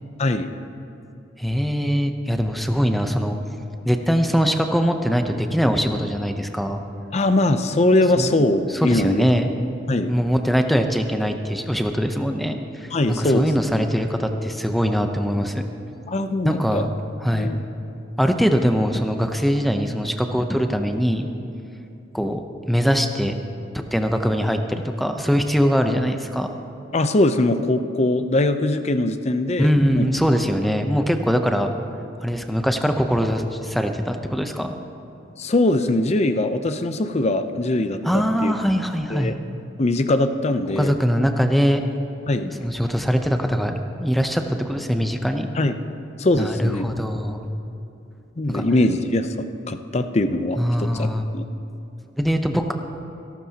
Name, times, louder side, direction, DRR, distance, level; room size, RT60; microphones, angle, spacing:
voice 1, 0.2-0.5 7.1-9.3 9.9-10.1 12.9-13.5 13.7-13.8 16.1-16.9 17.3-17.6 26.9-30.1 35.4-38.0 38.4-38.5 39.1-39.3 39.8-40.9 42.3-42.5 45.6-45.7 46.2-46.8 48.4-49.3 49.7-51.1 51.3-51.4, left 2 dB, 35° left, 9 dB, 0.6 m, -21 dB
voice 2, 1.4-3.4 3.8-6.8 8.2-8.4 8.7-9.5 10.1-15.7 16.4-16.9 17.2-17.5 18.2-21.3 22.1-23.3 23.9-26.5 29.6-31.7 32.2-34.7 38.0-39.4 40.8-41.8 42.3-45.5 46.4-47.4 48.5-48.6 50.6-51.3 52.2-52.7, equal, ahead, 5 dB, 0.7 m, -22 dB
26.0 x 12.0 x 2.9 m, 2.8 s
head